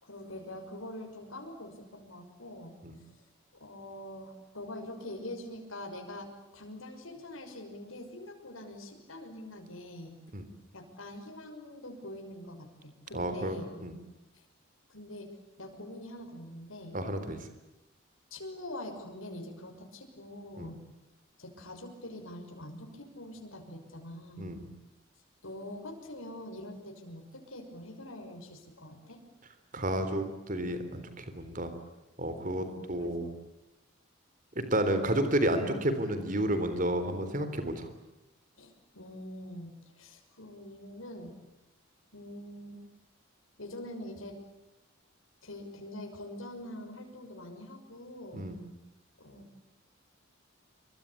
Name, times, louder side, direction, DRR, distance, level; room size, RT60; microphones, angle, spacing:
voice 1, 0.0-3.2 3.5-10.2 10.7-13.7 14.3-14.4 14.9-15.3 15.6-17.0 18.3-20.8 21.4-24.5 25.4-29.2 32.6-33.3 38.6-41.3 42.1-42.8 43.6-44.4 45.4-48.4 49.2-49.4, left 1 dB, 85° left, 3 dB, 6.2 m, -44 dB
voice 2, 13.1-13.9 16.9-17.4 20.6-20.7 24.4-24.7 29.7-31.7 32.2-33.3 34.6-37.9 48.3-48.7, right 1 dB, 40° right, 9 dB, 3.6 m, -31 dB
27.5 x 24.5 x 8.5 m, 0.97 s
head